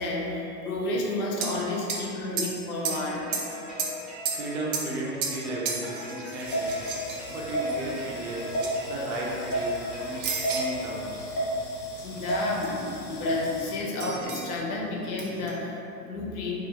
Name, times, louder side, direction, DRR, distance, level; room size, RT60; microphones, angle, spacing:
voice 1, 0.0-3.2 10.1-10.2 12.0-16.6, left 2 dB, 60° left, -2 dB, 0.7 m, -31 dB
sound 1, 1.4-1.6 1.9-2.1 2.4-3.0 3.3-4.0 4.2-5.4 5.7-7.9 8.5-8.7 9.1-9.7 10.2-10.8 12.6-12.7 14.0-14.6 15.2-15.6, right 5 dB, 90° right, 0.6 m, -33 dB
sound 2, 2.9-11.3, left 2 dB, ahead, 0.6 m, -41 dB
voice 2, 4.3-6.8 7.3-8.5 8.8-11.4, right 2 dB, 45° right, -4 dB, 0.5 m, -35 dB
sound 3, 6.4-13.7, right 1 dB, 85° left, 0.9 m, -32 dB
2.4 x 2.4 x 2.8 m, 2.9 s
supercardioid pair, 155°, 49 cm